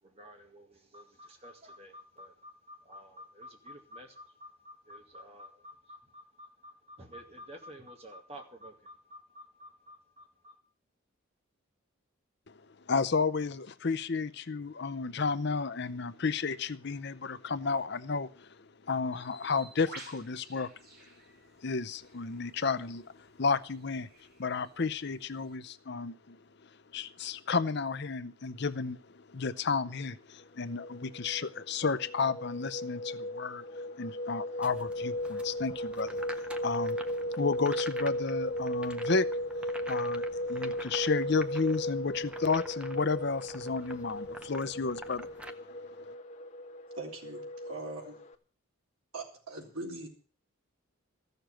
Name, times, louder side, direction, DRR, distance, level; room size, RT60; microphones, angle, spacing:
voice 1, 0.0-10.5, equal, 30° right, 2 dB, 2.2 m, -51 dB
voice 2, 12.9-18.5 18.9-20.7 21.6-24.1 24.4-26.4 26.9-39.3 39.8-46.1, left 4 dB, 50° left, 13 dB, 0.6 m, -32 dB
Bird, 19.1-25.5, right 2 dB, 45° right, 3.3 m, -54 dB
sound 1, 30.6-48.3, equal, 35° left, 1.2 m, -36 dB
sound 2, 34.6-45.5, equal, 5° right, 0.6 m, -48 dB
voice 3, 47.0-48.2 49.1-50.1, right 2 dB, 85° right, 0 dB, 3.9 m, -41 dB
14.5 x 6.8 x 8.9 m, 0.42 s
head